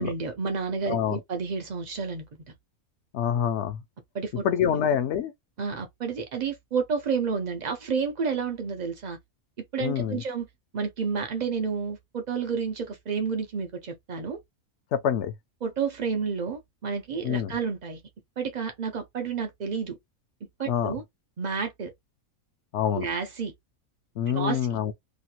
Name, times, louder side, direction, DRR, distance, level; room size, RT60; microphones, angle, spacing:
voice 1, 0.0-2.4 4.1-4.5 4.7-4.8 5.6-9.2 9.7-10.5 10.7-14.4 15.6-18.0 18.4-20.0 20.6-21.0 21.4-21.9 22.9-23.5 24.3-24.6, right 5 dB, 75° right, 0.4 m, -30 dB
voice 2, 0.9-1.2 3.1-3.8 4.4-5.3 9.8-10.2 14.9-15.3 17.2-17.5 20.7-20.9 22.7-23.1 24.2-24.9, left 9 dB, 65° left, 0.7 m, -26 dB
3.0 x 2.4 x 2.8 m
omnidirectional pair, 1.5 m